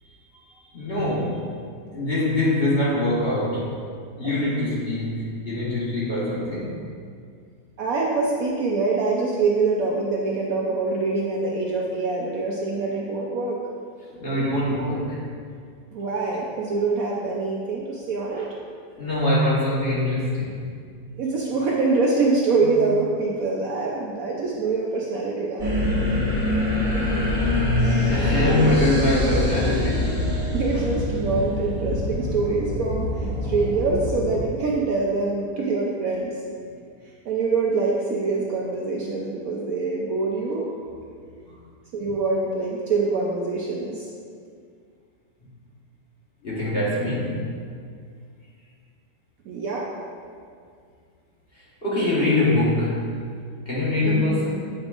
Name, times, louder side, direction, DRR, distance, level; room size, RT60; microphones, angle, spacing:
voice 1, 0.7-1.5 1.9-3.8 4.2-6.7 14.0-15.2 18.4-18.5 18.9-20.7 22.7-22.8 27.8-30.1 41.5-41.6 46.4-47.4 51.8-53.2 53.7-54.6, left 1 dB, 35° left, -7 dB, 1.2 m, -23 dB
voice 2, 7.8-13.6 15.9-18.5 21.1-25.7 30.5-36.3 37.3-40.7 41.9-44.0 49.5-49.9 54.0-54.3, right 3 dB, 65° right, -3 dB, 0.9 m, -24 dB
sound 1, 25.6-34.4, left 1 dB, 30° right, 1.5 m, -24 dB
8.6 x 5.1 x 2.4 m, 2.2 s
omnidirectional pair, 1.9 m